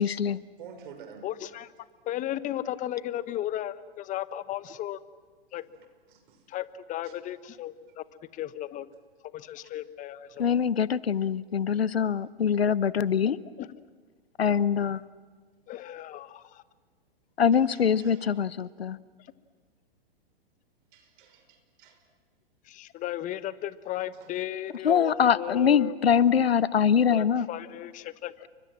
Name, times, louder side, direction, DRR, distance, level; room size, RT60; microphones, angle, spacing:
voice 1, 0.0-0.4 10.4-13.4 14.4-15.0 17.4-19.0 24.8-27.5, left 7 dB, 85° left, 19 dB, 1.0 m, -23 dB
voice 2, 0.6-1.2 6.1-6.4 7.0-7.1 17.5-18.3 20.9-22.0 24.2-24.3, right 7 dB, 55° right, 7 dB, 6.1 m, -49 dB
voice 3, 1.2-1.7 2.0-5.0 5.5-5.6 6.5-8.0 8.3-8.9 9.3-10.5 13.3-13.7 15.7-16.6 22.6-25.9 27.1-28.5, left 13 dB, 25° left, 16 dB, 1.1 m, -35 dB
29.5 x 24.5 x 7.4 m, 1.5 s
hypercardioid pair, 120°, 30 cm